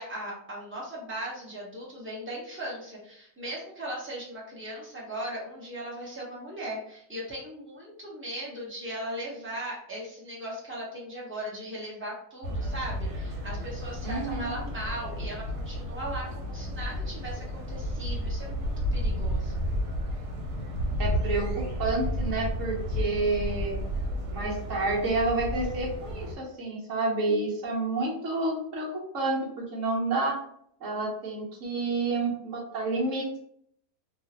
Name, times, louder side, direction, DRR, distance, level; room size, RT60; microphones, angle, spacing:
voice 1, 0.0-19.6, right 1 dB, 10° right, -6 dB, 0.7 m, -38 dB
sound 1, 12.4-26.4, equal, 85° right, 1.3 m, -32 dB
voice 2, 14.0-14.5 21.0-23.8 24.3-30.4 30.8-33.4, right 2 dB, 60° right, -2 dB, 1.1 m, -29 dB
2.9 x 2.4 x 2.8 m, 0.68 s
omnidirectional pair, 1.7 m